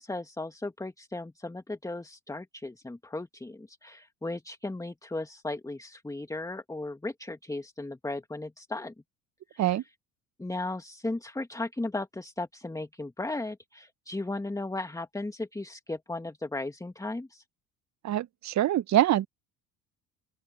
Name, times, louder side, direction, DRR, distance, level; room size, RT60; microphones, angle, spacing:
voice 1, 0.0-8.9 9.5-9.8 10.4-17.4, left 2 dB, 10° left, 2.4 m, -36 dB
voice 2, 18.0-19.3, right 13 dB, 40° right, 1.5 m, -24 dB
open air
figure-of-eight pair, 60°, 42 cm